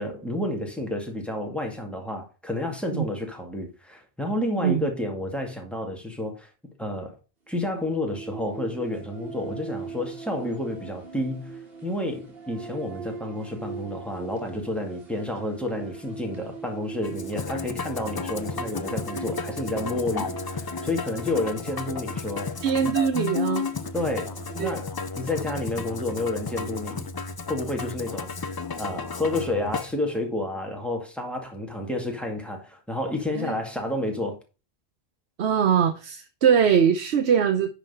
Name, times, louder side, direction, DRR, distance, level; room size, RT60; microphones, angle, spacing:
voice 1, 0.0-6.5 6.8-7.2 7.5-22.5 22.8-22.9 23.9-27.1 27.5-34.4, left 1 dB, ahead, 2.1 m, -30 dB
sound 1, 7.5-24.7, right 5 dB, 65° right, 2.2 m, -41 dB
Musical instrument, 17.0-29.9, left 4 dB, 40° left, 0.3 m, -33 dB
voice 2, 22.6-23.7 24.6-24.7 25.4-25.5 33.3-33.6 35.4-37.7, right 7 dB, 85° right, 1.0 m, -22 dB
10.5 x 4.1 x 5.5 m
omnidirectional pair, 1.1 m